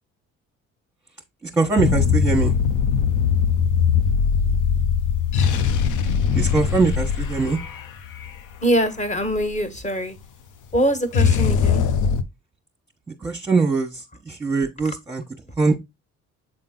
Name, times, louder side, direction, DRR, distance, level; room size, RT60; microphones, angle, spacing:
voice 1, 1.5-2.5 6.3-7.6 13.2-13.9 14.3-15.2 15.6-15.8, right 4 dB, 10° right, 1.2 m, -21 dB
sound 1, 1.8-9.6 11.1-12.2, left 7 dB, 85° left, 0.8 m, -21 dB
voice 2, 8.6-10.1 10.7-11.8, equal, 25° left, 1.6 m, -23 dB
7.8 x 3.8 x 3.8 m
cardioid pair, 90°, 30 cm